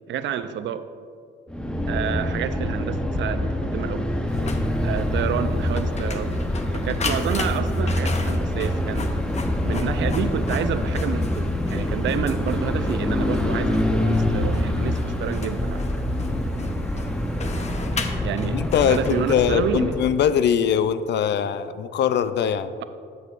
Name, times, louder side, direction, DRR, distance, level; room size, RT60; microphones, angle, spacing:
voice 1, 0.1-0.9 1.9-4.1 4.8-6.4 6.7-9.1 9.6-15.9 18.2-18.6 18.9-19.9, right 9 dB, 70° right, 11 dB, 0.5 m, -29 dB
sound 1, 1.5-20.2, left 1 dB, 5° left, 0.7 m, -25 dB
Printer, 4.3-19.7, left 4 dB, 35° left, 0.7 m, -37 dB
voice 2, 18.5-22.7, left 8 dB, 60° left, 13 dB, 0.4 m, -22 dB
12.0 x 6.9 x 2.5 m, 2.2 s
cardioid pair, 90°, 20 cm